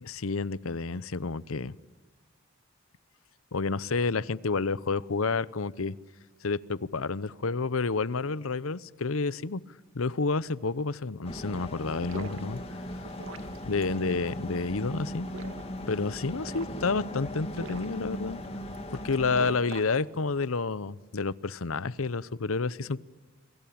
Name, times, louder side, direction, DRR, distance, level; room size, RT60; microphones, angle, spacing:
voice 1, 0.0-1.7 3.5-5.9 6.4-9.6 9.9-12.6 13.7-15.3 15.9-18.4 19.0-23.0, left 4 dB, 90° left, 19 dB, 0.8 m, -30 dB
sound 1, 11.2-19.5, left 1 dB, 30° left, 2.7 m, -38 dB
sound 2, 11.8-20.6, right 2 dB, 75° right, 2.6 m, -46 dB
29.0 x 23.0 x 8.7 m, 1.2 s
head